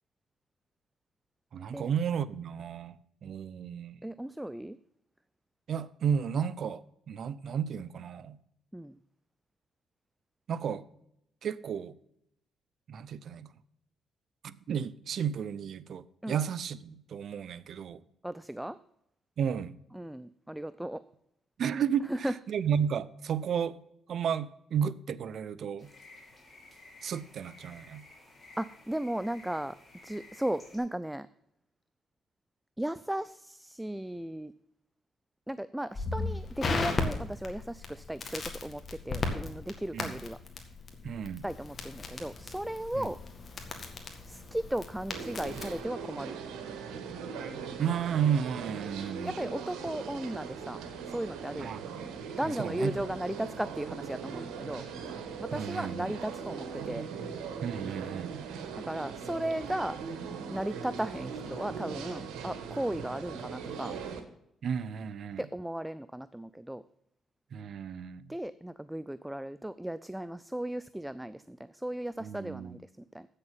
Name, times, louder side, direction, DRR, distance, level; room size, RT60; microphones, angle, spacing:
voice 1, 1.5-4.0 5.7-8.4 10.5-10.8 11.4-11.9 12.9-13.5 14.4-18.0 19.4-19.7 21.6-23.8 24.1-25.9 27.0-28.1 39.9-40.1 41.0-41.4 42.9-43.1 47.8-49.3 51.6-51.8 52.4-52.9 55.5-56.1 57.6-58.3 64.6-65.4 67.5-68.3 72.2-72.8, right 8 dB, 60° right, 0.5 m, -33 dB
voice 2, 4.0-4.8 8.7-9.0 16.2-16.4 18.2-18.8 19.9-21.1 22.1-22.3 28.6-29.8 30.0-31.3 32.8-34.5 35.5-40.4 41.4-43.2 44.3-46.4 49.2-50.8 51.1-51.7 52.3-54.9 55.4-57.0 58.8-60.0 60.5-63.9 65.4-66.8 68.3-72.8 73.1-73.3, right 1 dB, 5° right, 0.3 m, -36 dB
sound 1, 25.8-30.8, left 2 dB, 20° left, 4.0 m, -54 dB
Crackle, 35.9-45.8, left 3 dB, 40° left, 1.8 m, -37 dB
sound 2, 45.1-64.2, right 6 dB, 90° right, 1.2 m, -40 dB
8.3 x 6.7 x 7.2 m
cardioid pair, 90°, 0 cm